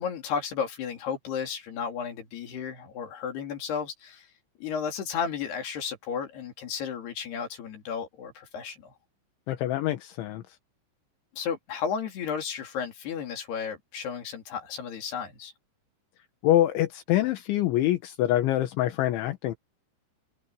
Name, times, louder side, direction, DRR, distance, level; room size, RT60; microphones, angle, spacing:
voice 1, 0.0-4.3 4.6-8.9 11.3-15.5, left 7 dB, 60° left, 4.8 m, -33 dB
voice 2, 9.5-10.4 16.4-19.6, left 13 dB, 75° left, 3.7 m, -25 dB
omnidirectional pair, 5.6 m